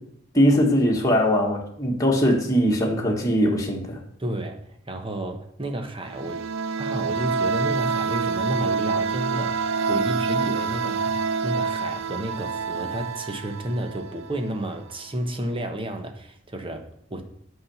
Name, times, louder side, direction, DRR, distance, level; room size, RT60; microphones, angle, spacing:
voice 1, 0.3-4.0, equal, 15° left, 1.6 m, -21 dB
voice 2, 4.2-4.6 4.9-6.4 6.8-17.2, right 1 dB, 25° right, 1.2 m, -31 dB
sound 1, 6.0-14.6, right 5 dB, 75° right, 0.5 m, -27 dB
8.7 x 5.9 x 7.1 m
head